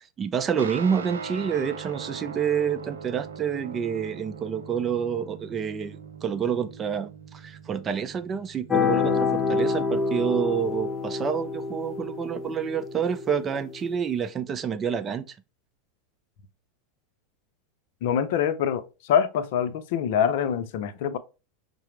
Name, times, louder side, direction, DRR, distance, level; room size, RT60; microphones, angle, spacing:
voice 1, 0.0-15.4, right 7 dB, 30° right, 0.4 m, -28 dB
Guitar, 0.6-10.3, right 6 dB, 85° right, 0.5 m, -41 dB
sound 1, 8.7-14.0, left 5 dB, 15° left, 0.6 m, -27 dB
voice 2, 18.0-21.2, left 8 dB, 65° left, 0.5 m, -25 dB
5.7 x 2.0 x 3.1 m
hypercardioid pair, 105°, 0 cm